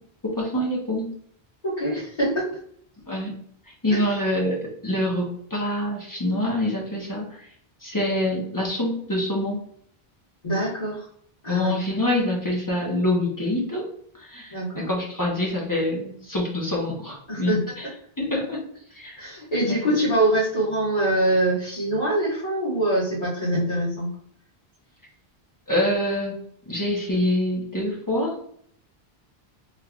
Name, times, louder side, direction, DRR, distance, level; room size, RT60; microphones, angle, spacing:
voice 1, 0.2-1.2 3.1-3.3 3.8-7.3 7.8-9.6 11.5-13.9 14.2-17.9 18.2-18.6 18.9-19.2 19.7-20.0 25.7-26.4 26.7-28.4, left 1 dB, 20° left, -3 dB, 0.8 m, -25 dB
voice 2, 1.6-2.4 10.4-11.0 11.4-11.7 14.5-14.9 17.3-17.6 19.2-24.1, right 1 dB, 35° left, -13 dB, 1.6 m, -24 dB
3.4 x 3.2 x 2.4 m, 0.64 s
omnidirectional pair, 1.1 m